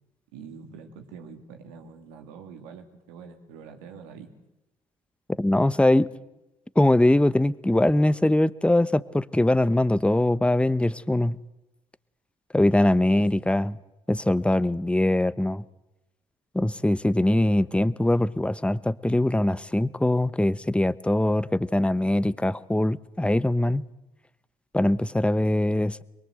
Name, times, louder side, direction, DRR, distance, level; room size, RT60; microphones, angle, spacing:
voice 1, 0.3-4.3 13.1-13.7, right 6 dB, 85° right, 2.5 m, -45 dB
voice 2, 5.4-6.1 6.8-11.4 12.5-13.7 14.1-15.6 16.5-23.8 24.7-26.0, left 1 dB, 5° left, 1.0 m, -22 dB
23.5 x 22.5 x 7.9 m
hypercardioid pair, 50°, 16 cm